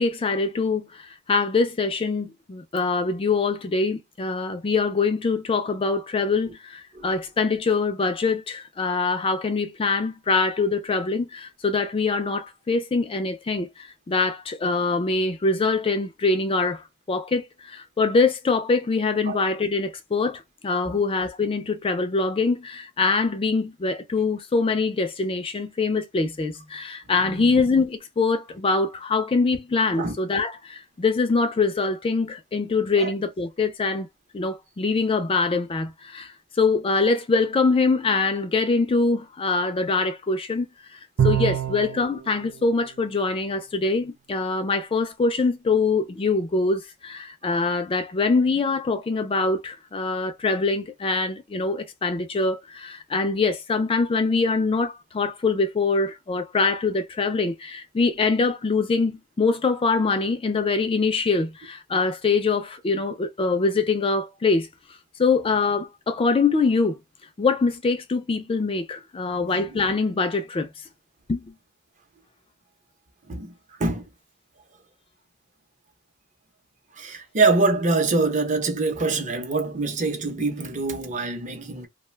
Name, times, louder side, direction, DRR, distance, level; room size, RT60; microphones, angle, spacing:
voice 1, 0.0-16.8 17.1-34.1 34.3-40.7 40.9-64.7 65.2-66.9 67.4-70.7 71.3-71.4, left 4 dB, 25° left, 0.3 m, -24 dB
Bowed string instrument, 41.2-42.1, right 9 dB, 75° right, 0.5 m, -23 dB
voice 2, 69.4-69.8 73.3-73.5 73.8-74.1 77.0-81.9, right 3 dB, 35° right, 0.7 m, -25 dB
2.4 x 2.2 x 3.1 m
head